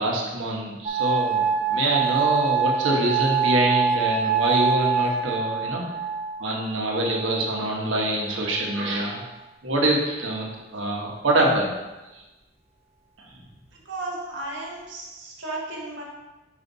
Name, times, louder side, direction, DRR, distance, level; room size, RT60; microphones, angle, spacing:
voice 1, 0.0-1.4 1.7-5.8 6.4-9.2 9.6-11.7, right 1 dB, 90° right, -1 dB, 1.4 m, -25 dB
sound 1, 0.8-7.8 8.6-9.2, right 6 dB, 30° right, 1.0 m, -25 dB
voice 2, 13.8-16.0, right 2 dB, 75° right, -3 dB, 1.6 m, -34 dB
5.5 x 5.4 x 4.0 m, 1.1 s
head